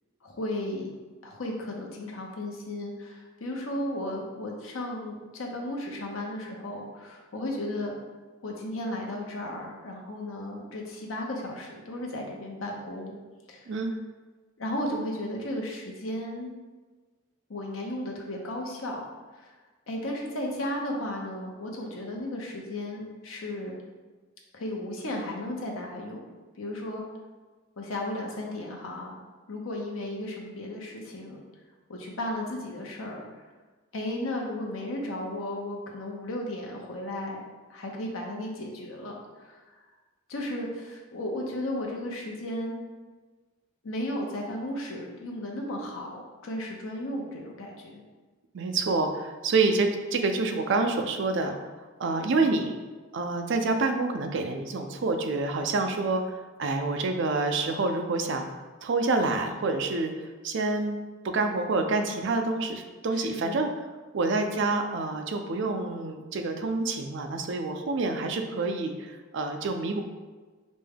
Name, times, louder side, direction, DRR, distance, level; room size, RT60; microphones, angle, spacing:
voice 1, 0.2-0.9 1.2-8.0 8.4-13.1 13.5-13.7 14.6-16.5 17.5-19.0 19.4-19.5 19.9-23.8 24.5-26.2 26.6-27.0 27.8-29.2 29.5-31.4 31.9-33.2 33.9-37.4 37.7-39.2 39.4-39.6 40.3-42.8 43.8-48.0 63.1-63.7, left 1 dB, 75° left, 0 dB, 0.8 m, -34 dB
voice 2, 48.5-52.8 53.1-58.5 58.8-61.0 61.3-63.7 64.1-70.0, right 3 dB, 60° right, 5 dB, 0.4 m, -27 dB
5.1 x 2.2 x 3.4 m, 1.3 s
head